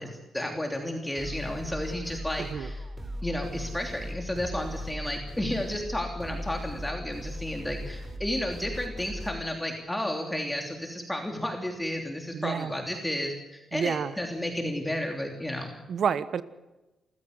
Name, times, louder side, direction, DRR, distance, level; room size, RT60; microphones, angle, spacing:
voice 1, 0.0-2.8 3.2-15.7, left 1 dB, 5° left, 2 dB, 3.1 m, -32 dB
sound 1, 1.1-9.3, equal, 25° right, 4.0 m, -38 dB
voice 2, 2.4-2.7 12.3-12.7 13.7-14.1 15.9-16.4, right 7 dB, 60° right, 14 dB, 1.2 m, -29 dB
28.0 x 15.0 x 8.1 m, 1.1 s
cardioid pair, 115°, 0 cm